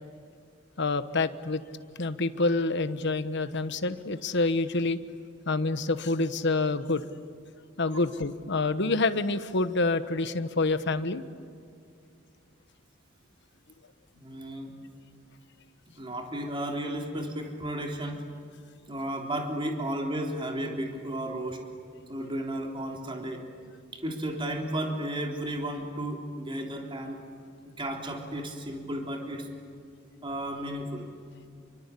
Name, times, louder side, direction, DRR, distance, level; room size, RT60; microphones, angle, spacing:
voice 1, 0.8-1.6 2.0-5.0 5.5-7.0 7.8-11.2, left 3 dB, 60° left, 12 dB, 1.2 m, -27 dB
voice 2, 14.1-14.7 16.0-18.2 18.9-21.6 22.1-23.4 23.9-27.2 27.8-29.5 30.2-31.1, right 1 dB, 25° right, 1 dB, 3.6 m, -33 dB
28.5 x 24.0 x 8.4 m, 2.3 s
head